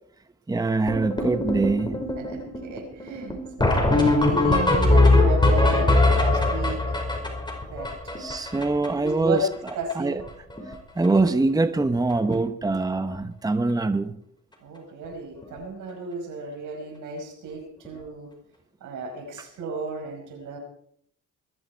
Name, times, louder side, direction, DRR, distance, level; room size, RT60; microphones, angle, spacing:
voice 1, 0.5-2.0 8.2-9.4 9.9-10.2 10.6-14.2, right 3 dB, 10° right, 1.0 m, -24 dB
sound 1, 0.9-9.1 9.4-9.5 9.7-9.9 10.2-10.7 11.0-11.3 12.1-12.2 12.6-12.7 13.0-13.2 15.4-15.5 17.8-17.9, left 2 dB, 15° left, 5.2 m, -22 dB
voice 2, 2.2-6.9 7.7-8.1 8.7-9.5 9.8-10.2 14.6-18.3 18.8-20.6, right 2 dB, 80° right, 5.3 m, -33 dB
21.5 x 14.0 x 4.6 m
cardioid pair, 90°, 30 cm